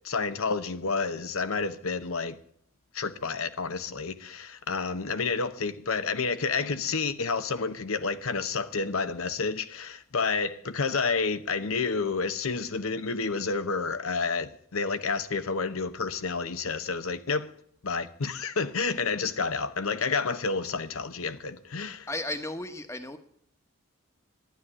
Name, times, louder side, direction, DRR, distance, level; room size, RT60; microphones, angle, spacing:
voice 1, 0.0-2.4 2.9-17.5 17.8-22.1, left 4 dB, 80° left, 0.9 m, -30 dB
voice 2, 22.1-23.2, left 2 dB, 15° left, 1.1 m, -34 dB
12.0 x 9.8 x 8.8 m
head